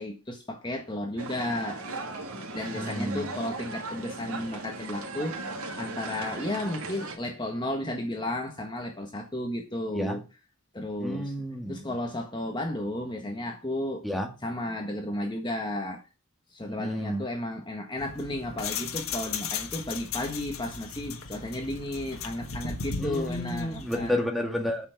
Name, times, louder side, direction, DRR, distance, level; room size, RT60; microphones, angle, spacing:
voice 1, 0.0-1.8 2.5-5.4 5.7-10.2 10.7-11.3 11.7-14.0 14.4-16.0 16.5-24.1, left 1 dB, 20° left, 1.5 m, -33 dB
sound 1, 1.2-7.2, right 3 dB, 80° right, 2.2 m, -37 dB
voice 2, 2.7-3.3 9.9-10.2 11.0-11.9 14.0-14.3 16.7-17.3 23.0-24.9, equal, ahead, 1.9 m, -31 dB
sound 2, 18.0-24.1, left 5 dB, 75° left, 1.5 m, -36 dB
8.6 x 7.0 x 5.9 m
head